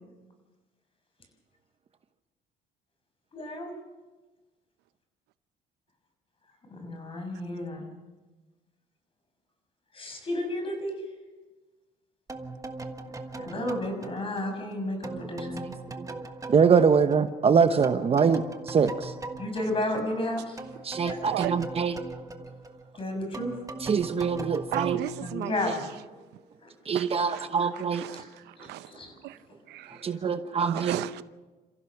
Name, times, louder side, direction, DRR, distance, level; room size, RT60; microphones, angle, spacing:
voice 1, 3.3-3.7 6.7-7.9 9.9-11.0 13.4-15.7 19.4-20.6 21.0-21.2 22.9-23.6 25.2-25.7 26.6-26.7 28.1-28.2 28.6-29.2 29.9-30.0, left 1 dB, 35° left, 6.3 m, -32 dB
sound 1, 12.3-17.5 17.8-26.0, right 3 dB, 20° right, 1.5 m, -40 dB
voice 2, 15.3-16.2 16.5-19.1 20.8-22.0 23.8-25.0 25.7-25.8 26.8-28.1 29.9-31.0, right 6 dB, 35° right, 1.0 m, -24 dB
voice 3, 24.7-25.5 26.9-27.0 27.3-27.5 27.7-28.9 29.2-29.4 29.7-30.1 30.6-31.2, right 15 dB, 80° right, 0.7 m, -35 dB
29.0 x 15.5 x 6.0 m
cardioid pair, 110°, 17 cm